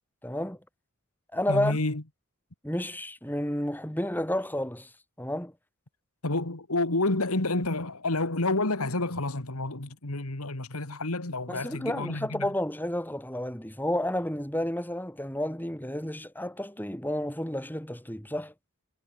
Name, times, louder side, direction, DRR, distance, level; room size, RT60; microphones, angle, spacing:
voice 1, 0.2-0.6 1.3-1.8 2.6-4.9 5.2-5.5 11.5-18.5, left 1 dB, 10° left, 4.6 m, -31 dB
voice 2, 1.5-2.0 6.2-12.5, left 2 dB, 85° left, 2.5 m, -29 dB
head